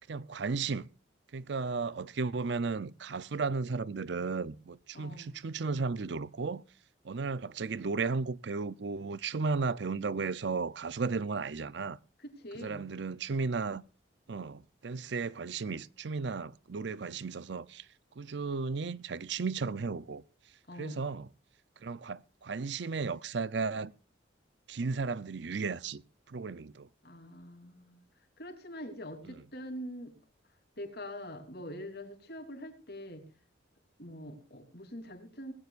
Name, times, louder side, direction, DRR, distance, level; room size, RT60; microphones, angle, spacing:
voice 1, 0.1-0.9 1.3-6.6 7.0-12.0 12.6-13.8 14.3-17.9 18.2-20.2 20.8-21.3 21.8-23.9 24.7-26.0 26.3-26.9, right 4 dB, 65° right, 0.6 m, -34 dB
voice 2, 4.9-5.4 12.2-12.9 20.7-21.0 27.0-30.2 30.8-33.2 34.0-35.5, equal, 55° left, 3.3 m, -44 dB
19.5 x 16.5 x 2.5 m
head